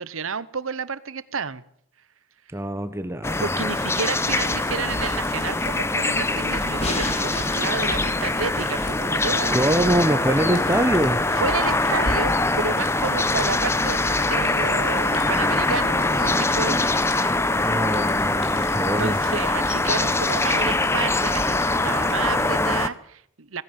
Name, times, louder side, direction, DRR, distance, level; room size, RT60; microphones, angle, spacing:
voice 1, 0.0-1.6 3.4-9.9 11.4-17.0 19.0-23.6, right 5 dB, 85° right, 16 dB, 1.1 m, -31 dB
voice 2, 2.5-3.5 9.5-11.2 17.6-19.2, right 1 dB, 10° right, 10 dB, 1.0 m, -24 dB
sound 1, 3.2-22.9, left 2 dB, 15° left, 0.8 m, -23 dB
sound 2, 4.2-22.3, left 1 dB, 65° left, 5.6 m, -39 dB
sound 3, 6.5-11.4, left 2 dB, 30° left, 3.3 m, -37 dB
17.5 x 16.0 x 9.3 m, 0.67 s
head